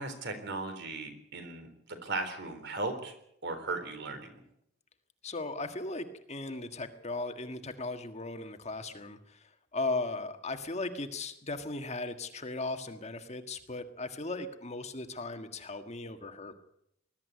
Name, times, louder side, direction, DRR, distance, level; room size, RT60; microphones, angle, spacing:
voice 1, 0.0-3.1 3.4-4.4, right 3 dB, 55° right, 7 dB, 3.9 m, -37 dB
voice 2, 5.2-16.5, left 2 dB, 35° left, 6 dB, 1.7 m, -37 dB
21.0 x 13.5 x 9.5 m, 0.76 s
head